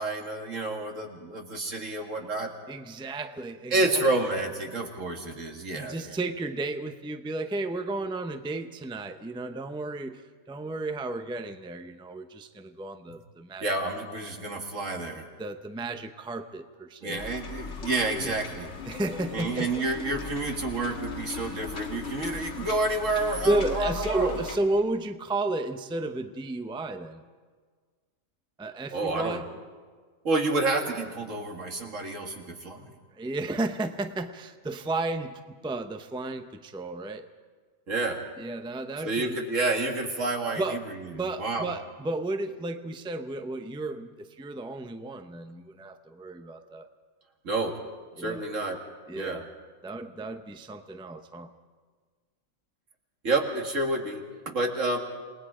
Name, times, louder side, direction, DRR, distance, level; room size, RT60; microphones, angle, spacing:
voice 1, 0.0-2.5 3.7-6.2 13.6-15.3 17.0-18.7 19.3-24.4 28.9-29.4 30.2-32.9 37.9-38.3 39.0-41.7 47.4-47.7 48.2-48.8 49.1-49.4 53.2-55.0, right 2 dB, 70° right, 2 dB, 2.4 m, -29 dB
voice 2, 2.7-4.0 5.7-10.2 10.5-13.7 15.4-17.2 18.2-18.3 18.9-19.8 23.4-27.2 28.6-29.5 33.2-37.3 38.4-39.4 40.6-40.8 41.1-46.9 48.2-48.4 49.1-49.4 49.8-51.5, right 2 dB, 5° right, 8 dB, 0.6 m, -33 dB
sound 1, 17.2-24.6, left 4 dB, 65° left, 1.8 m, -38 dB
28.0 x 19.5 x 5.0 m, 1.5 s
omnidirectional pair, 1.4 m